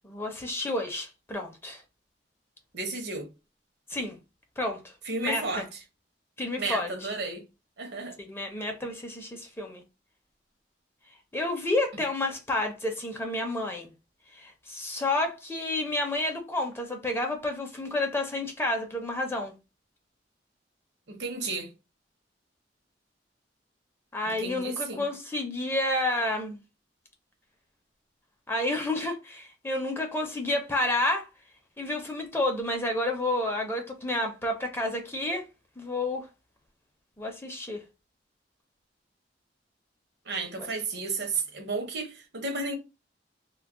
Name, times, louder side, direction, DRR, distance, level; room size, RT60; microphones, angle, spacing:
voice 1, 0.0-1.8 3.9-4.2 4.6-4.9 5.2-5.6 6.4-6.9 8.2-9.8 11.3-13.9 14.3-19.5 24.1-26.6 28.5-31.3 31.8-35.4 35.8-36.3 37.2-37.8 40.6-40.7, left 2 dB, 15° left, 0.5 m, -30 dB
voice 2, 2.7-3.3 5.0-5.6 6.6-7.4 7.8-8.2 21.1-21.7 24.2-25.1 40.3-42.8, right 3 dB, 65° right, 0.7 m, -33 dB
2.2 x 2.0 x 3.5 m
head